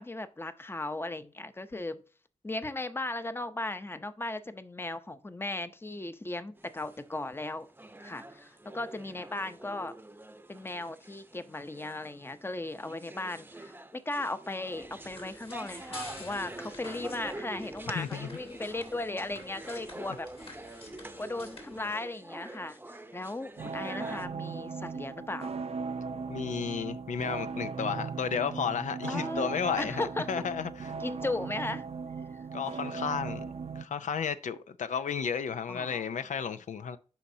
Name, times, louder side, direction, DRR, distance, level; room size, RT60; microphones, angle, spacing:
voice 1, 0.0-2.0 2.4-7.7 8.0-9.9 10.5-20.3 21.2-22.8 23.1-25.5 29.1-29.5 29.8-30.3 31.0-31.9 35.7-36.0, left 2 dB, 20° left, 0.7 m, -37 dB
sound 1, 6.6-24.3, right 1 dB, 15° right, 0.7 m, -46 dB
sound 2, 14.7-21.9, left 2 dB, 50° left, 2.7 m, -50 dB
voice 2, 17.9-18.3 26.3-30.9 32.5-33.4 33.8-37.0, left 7 dB, 85° left, 0.4 m, -33 dB
sound 3, 23.6-33.8, right 5 dB, 55° right, 0.5 m, -38 dB
11.5 x 4.1 x 2.7 m
cardioid pair, 60°, 12 cm